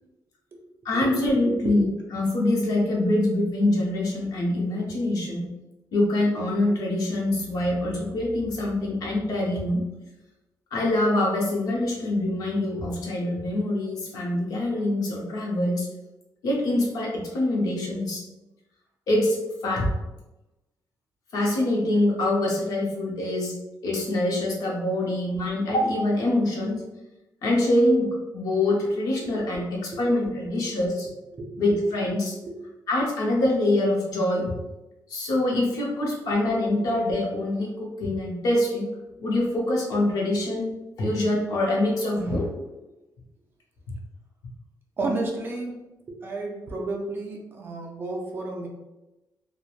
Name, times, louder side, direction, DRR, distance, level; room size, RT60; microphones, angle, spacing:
voice 1, 0.8-1.9 2.1-5.5 5.9-9.8 10.7-15.9 16.4-18.2 19.1-19.4 19.6-19.9 21.3-23.5 23.8-26.8 27.4-31.1 31.6-32.3 32.9-34.4 35.1-38.9 39.2-40.7 41.0-42.5, left 1 dB, 60° left, -1 dB, 0.7 m, -24 dB
voice 2, 31.3-31.8 32.4-32.5 42.1-42.5 45.0-45.7 46.1-48.7, right 2 dB, 30° right, 0 dB, 0.4 m, -32 dB
3.0 x 2.1 x 2.4 m, 1.0 s
wide cardioid pair, 180°, 7 cm